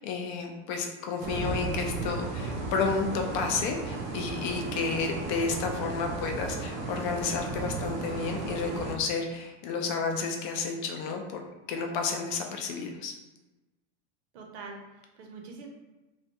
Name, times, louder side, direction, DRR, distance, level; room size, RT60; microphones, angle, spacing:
voice 1, 0.0-11.4 11.7-13.1, left 4 dB, 45° left, 3 dB, 0.4 m, -31 dB
sound 1, 1.2-8.9, right 3 dB, 35° right, 0.5 m, -35 dB
voice 2, 14.3-15.7, right 4 dB, 80° right, 1 dB, 0.7 m, -44 dB
2.4 x 2.2 x 2.8 m, 1.1 s
supercardioid pair, 165°, 33 cm